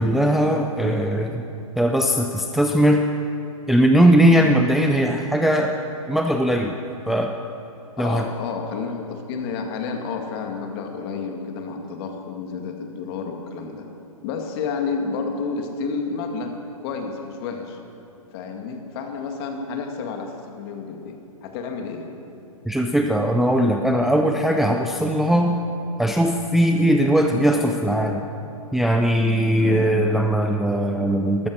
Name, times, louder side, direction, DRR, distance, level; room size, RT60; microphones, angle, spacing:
voice 1, 0.0-1.4 1.8-3.0 3.7-5.8 6.1-6.7 7.1-7.4 8.0-8.3 22.7-25.6 26.0-28.3 28.7-31.5, equal, ahead, 3 dB, 0.4 m, -19 dB
voice 2, 8.0-13.9 14.2-16.5 16.8-17.8 18.3-22.1 26.7-26.9 29.6-29.9, left 5 dB, 45° left, 3 dB, 2.1 m, -30 dB
13.5 x 13.5 x 6.2 m, 2.8 s
hypercardioid pair, 130°, 18 cm